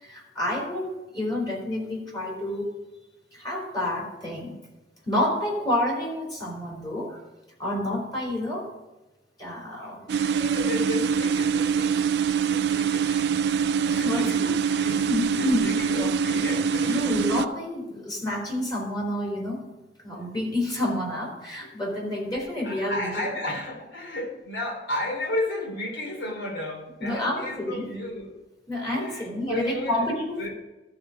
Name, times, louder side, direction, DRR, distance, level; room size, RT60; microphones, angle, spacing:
voice 1, 0.0-2.7 3.3-4.5 5.0-7.2 7.6-8.7 9.4-10.0 13.9-14.3 15.1-15.6 16.0-16.1 16.9-19.6 20.0-23.2 27.0-27.9 28.7-30.5, left 1 dB, 25° left, -3 dB, 3.2 m, -29 dB
sound 1, 10.1-17.5, right 6 dB, 65° right, 0.4 m, -24 dB
voice 2, 10.2-12.2 12.4-17.1 20.1-20.2 21.6-21.8 22.6-28.4 28.9-30.0 30.4-30.5, left 1 dB, 80° left, -1 dB, 3.0 m, -33 dB
13.0 x 4.7 x 6.4 m, 1.1 s
head